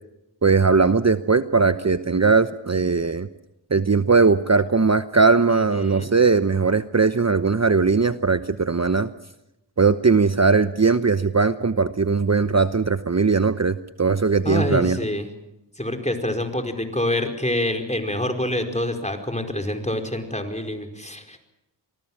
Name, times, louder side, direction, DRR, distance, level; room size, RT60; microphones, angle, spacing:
voice 1, 0.4-3.3 3.7-9.1 9.8-15.0, right 4 dB, 35° right, 11 dB, 1.0 m, -19 dB
voice 2, 5.5-6.1 14.4-15.3 15.8-21.4, left 1 dB, 15° left, 5 dB, 4.8 m, -26 dB
26.5 x 19.5 x 7.4 m, 0.90 s
cardioid pair, 40°, 43 cm